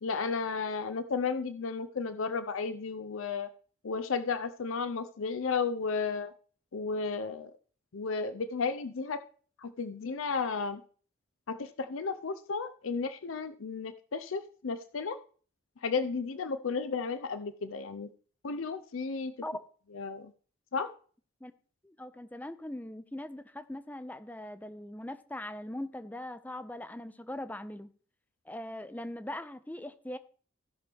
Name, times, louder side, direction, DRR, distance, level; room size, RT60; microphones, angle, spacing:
voice 1, 0.0-3.5 3.8-6.3 6.7-7.5 7.9-9.2 9.6-10.8 11.5-15.2 15.8-18.1 18.4-19.3 19.9-20.3 20.7-20.9, left 5 dB, 85° left, 10 dB, 0.6 m, -33 dB
voice 2, 21.8-27.9 28.5-30.2, left 1 dB, 10° left, 12 dB, 0.5 m, -40 dB
15.5 x 6.0 x 3.5 m, 0.42 s
head